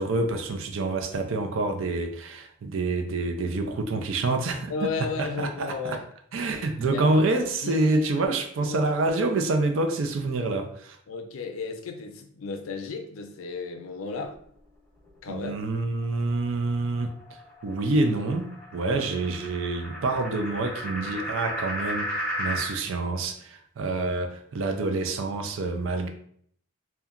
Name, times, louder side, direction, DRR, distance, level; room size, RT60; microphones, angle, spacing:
voice 1, 0.0-6.0 6.3-11.0 15.3-17.1 17.6-26.1, right 2 dB, 65° right, 5 dB, 0.4 m, -27 dB
voice 2, 4.7-6.1 6.6-7.1 7.6-8.3 8.6-8.8 11.1-14.4 15.2-15.5 18.8-19.0, left 4 dB, 80° left, 6 dB, 0.4 m, -34 dB
sound 1, 16.0-22.8, equal, 5° left, 0.6 m, -35 dB
2.8 x 2.2 x 2.4 m, 0.63 s
head